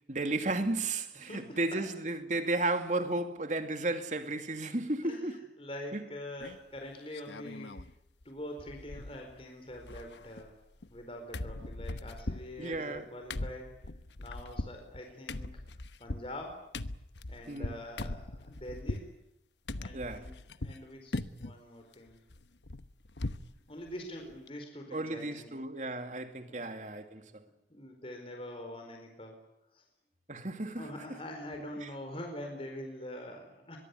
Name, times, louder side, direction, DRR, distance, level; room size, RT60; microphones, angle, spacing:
voice 1, 0.1-5.4 5.9-6.0 12.6-13.1 17.5-17.8 19.9-20.3 24.9-27.4 30.3-30.9, right 2 dB, 45° right, 2.6 m, -33 dB
voice 2, 1.2-1.8 5.0-7.8 8.2-10.5 10.9-13.7 14.2-15.6 16.0-16.6 17.3-19.1 19.8-22.2 23.7-25.5 26.5-26.6 27.4-29.3 29.7-29.8 30.8-33.8, left 1 dB, 30° left, 4.5 m, -44 dB
sound 1, 6.4-6.8 7.1-7.9 8.2-8.3 8.6-9.4 9.7-11.0 11.3-19.1 19.7-20.8 21.1-21.6 21.9-23.5 23.9-24.0 24.3-24.5, left 2 dB, 85° left, 1.1 m, -40 dB
23.0 x 23.0 x 9.6 m
head